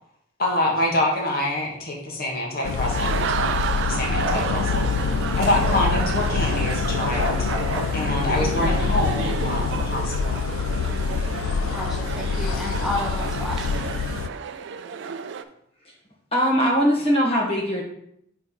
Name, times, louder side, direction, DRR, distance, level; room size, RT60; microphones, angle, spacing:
voice 1, 0.4-4.9 5.4-7.4 7.9-10.3, left 1 dB, 50° left, -1 dB, 1.3 m, -26 dB
sound 1, 2.6-14.3, left 5 dB, 80° left, 0.3 m, -26 dB
sound 2, 2.6-15.4, right 6 dB, 60° right, 0.4 m, -31 dB
Bark, 4.2-4.5 5.6-5.9 7.2-7.9, equal, 85° right, 1.0 m, -29 dB
voice 2, 11.7-13.9, left 1 dB, ahead, -2 dB, 0.6 m, -31 dB
voice 3, 16.3-17.8, equal, 30° left, -3 dB, 1.7 m, -20 dB
4.5 x 4.2 x 5.6 m, 0.73 s
head